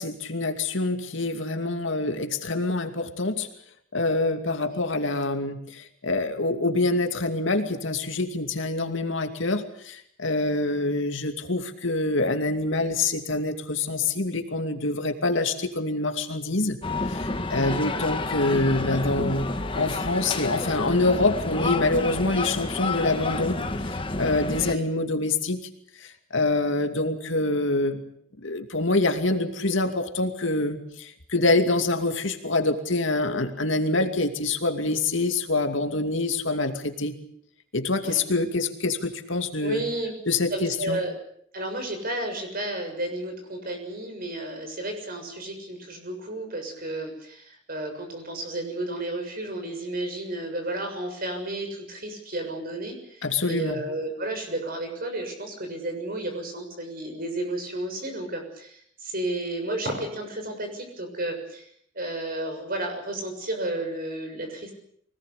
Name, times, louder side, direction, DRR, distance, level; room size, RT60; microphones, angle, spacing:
voice 1, 0.0-3.5 3.9-16.8 17.1-19.5 19.7-23.6 24.2-25.7 26.0-28.0 28.4-37.1 37.7-39.8 40.3-41.0 53.2-53.8, left 2 dB, 65° left, 5 dB, 2.6 m, -26 dB
sound 1, 16.8-24.7, left 2 dB, 25° left, 1.5 m, -29 dB
voice 2, 39.6-40.1 40.5-41.2 41.5-61.7 62.0-64.7, right 1 dB, 45° right, 5 dB, 6.9 m, -32 dB
25.0 x 19.0 x 8.4 m, 0.67 s
head